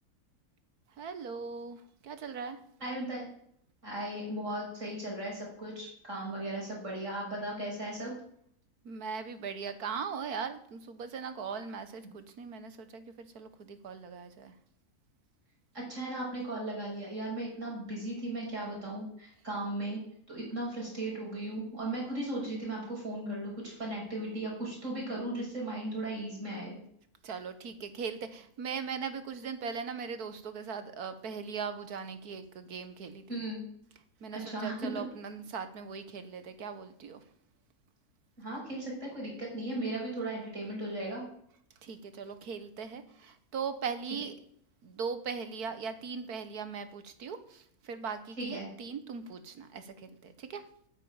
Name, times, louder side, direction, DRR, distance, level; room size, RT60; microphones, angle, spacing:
voice 1, 1.0-2.6 8.9-14.5 27.2-33.4 34.2-37.2 41.8-44.3 44.8-50.6, right 6 dB, 85° right, 11 dB, 1.8 m, -39 dB
voice 2, 2.8-3.3 3.8-8.1 15.7-26.8 33.3-33.6 34.3-35.1 38.4-41.2 48.4-48.7, right 1 dB, 55° right, -3 dB, 6.8 m, -37 dB
10.5 x 9.2 x 8.9 m, 0.69 s
omnidirectional pair, 1.6 m